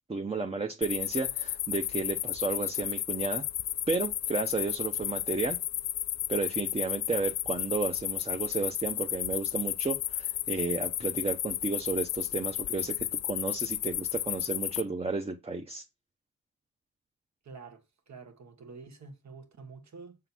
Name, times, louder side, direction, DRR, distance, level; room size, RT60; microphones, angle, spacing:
voice 1, 0.1-3.4 3.9-5.6 6.3-15.8, right 4 dB, 20° right, 0.8 m, -32 dB
sound 1, 0.8-14.8, left 12 dB, 65° left, 0.5 m, -33 dB
voice 2, 17.4-20.2, right 4 dB, 65° right, 1.7 m, -48 dB
7.2 x 3.8 x 6.0 m
cardioid pair, 95°, 31 cm